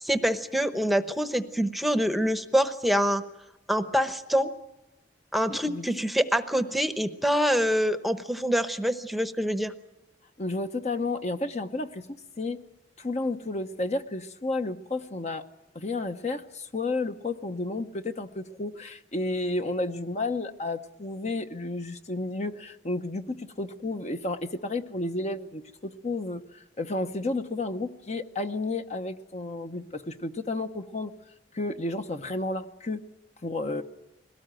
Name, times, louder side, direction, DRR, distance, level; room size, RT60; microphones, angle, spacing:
voice 1, 0.0-3.2 3.7-4.5 5.3-9.7, equal, ahead, 10 dB, 0.9 m, -25 dB
voice 2, 5.5-5.8 10.4-12.6 13.0-15.4 15.7-31.1 31.5-33.0 33.4-33.8, left 2 dB, 40° left, 8 dB, 0.9 m, -32 dB
21.5 x 18.0 x 9.0 m, 0.99 s
head